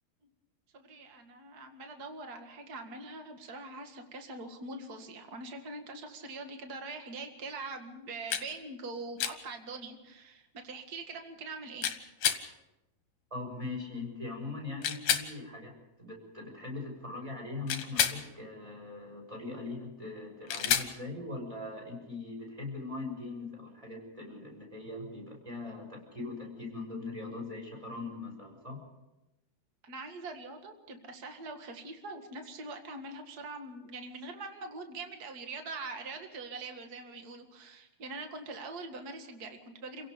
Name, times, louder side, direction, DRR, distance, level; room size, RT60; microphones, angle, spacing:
voice 1, 0.7-11.9 29.8-40.1, right 3 dB, 35° right, 5 dB, 1.7 m, -43 dB
sound 1, 8.3-8.5 9.2-9.4 11.8-12.4 14.8-15.3 17.7-18.2 20.5-20.9, left 9 dB, 65° left, 2.8 m, -29 dB
voice 2, 13.3-15.7 16.0-28.8, left 3 dB, 10° right, 0 dB, 6.2 m, -41 dB
29.0 x 17.0 x 5.2 m, 0.98 s
omnidirectional pair, 4.4 m